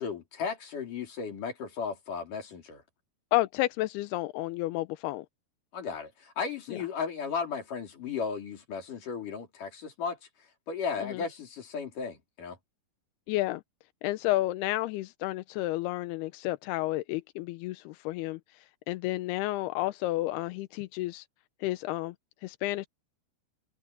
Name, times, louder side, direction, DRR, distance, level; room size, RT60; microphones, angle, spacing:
voice 1, 0.0-2.8 5.7-10.2 10.7-12.6, left 5 dB, 50° left, 5.1 m, -35 dB
voice 2, 3.3-5.3 6.7-6.8 11.0-11.2 13.3-13.6 14.0-18.4 18.9-21.3 21.6-22.1 22.4-22.9, left 17 dB, 80° left, 2.5 m, -31 dB
omnidirectional pair, 5.0 m